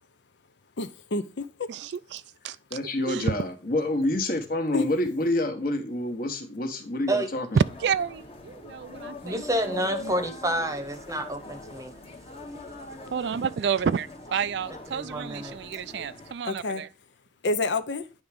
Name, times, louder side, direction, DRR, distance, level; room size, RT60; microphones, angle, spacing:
voice 1, 0.8-1.7 4.7-4.9 15.9-16.0 16.4-16.8 17.4-18.1, left 3 dB, 65° left, 0.6 m, -29 dB
voice 2, 1.7-2.6 3.1-3.3 7.5-9.4 10.0-10.1 13.1-16.9, right 6 dB, 60° right, 0.3 m, -29 dB
voice 3, 2.7-7.6, left 1 dB, 50° left, 1.3 m, -28 dB
sound 1, 7.6-16.3, left 3 dB, 30° left, 1.0 m, -42 dB
voice 4, 9.2-11.9 14.9-15.6, right 1 dB, 15° right, 0.9 m, -29 dB
9.5 x 3.5 x 5.0 m
head